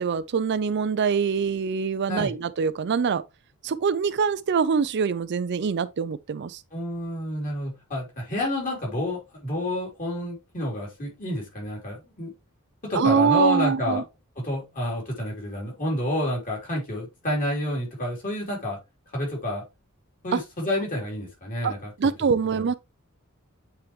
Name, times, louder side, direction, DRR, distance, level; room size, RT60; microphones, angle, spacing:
voice 1, 0.0-3.2 3.6-6.6 13.0-14.0 20.3-20.4 21.6-21.7 22.0-22.7, right 6 dB, 50° right, 0.4 m, -24 dB
voice 2, 6.7-12.3 12.8-14.0 14.4-18.8 19.1-19.6 20.2-22.6, left 1 dB, 40° left, 3.9 m, -29 dB
8.7 x 4.5 x 3.2 m
head